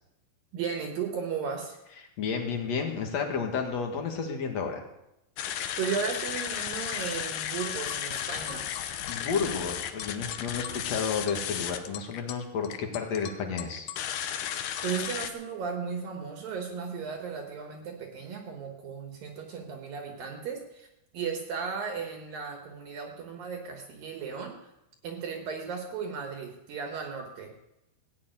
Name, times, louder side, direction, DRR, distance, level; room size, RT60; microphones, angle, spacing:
voice 1, 0.5-1.7 5.6-8.7 14.6-20.9 21.1-24.7 25.0-27.5, right 6 dB, 65° right, 3 dB, 2.8 m, -35 dB
voice 2, 2.2-4.8 9.1-13.9, left 6 dB, 50° left, 3 dB, 2.3 m, -31 dB
sound 1, 5.4-15.3, left 10 dB, 85° left, 1.8 m, -34 dB
15.5 x 7.2 x 9.1 m, 0.85 s
omnidirectional pair, 4.8 m